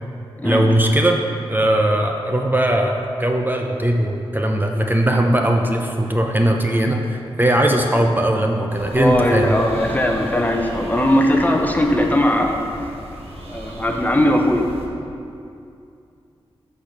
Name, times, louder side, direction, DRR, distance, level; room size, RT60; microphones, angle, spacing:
voice 1, 0.4-1.2 1.5-9.5, right 1 dB, 20° right, 2 dB, 0.7 m, -19 dB
sound 1, 8.7-14.9, right 1 dB, 75° right, 1.3 m, -35 dB
voice 2, 8.9-12.9 13.5-14.6, left 1 dB, 15° left, 2 dB, 0.9 m, -19 dB
8.2 x 4.4 x 6.0 m, 2.6 s
cardioid pair, 50°, 10 cm